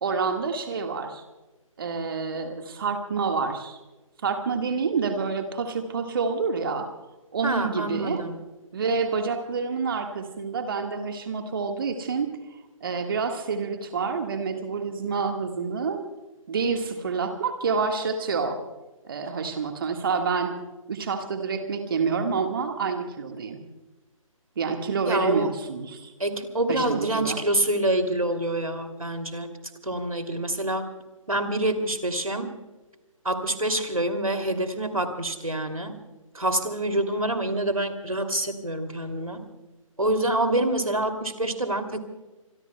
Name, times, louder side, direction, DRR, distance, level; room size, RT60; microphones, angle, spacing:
voice 1, 0.0-1.2 1.8-3.8 4.2-6.9 7.3-8.2 8.7-12.3 12.8-16.0 16.5-18.6 19.0-20.6 20.9-23.6 24.6-26.1 26.7-27.4, right 5 dB, 40° right, 5 dB, 1.7 m, -28 dB
voice 2, 7.4-8.4 25.1-25.5 26.2-29.5 29.8-30.9 31.3-32.5 33.2-36.0 36.3-39.4 40.0-42.0, right 1 dB, 80° right, 7 dB, 2.7 m, -26 dB
27.0 x 22.5 x 2.3 m, 1.1 s
figure-of-eight pair, 140°, 17 cm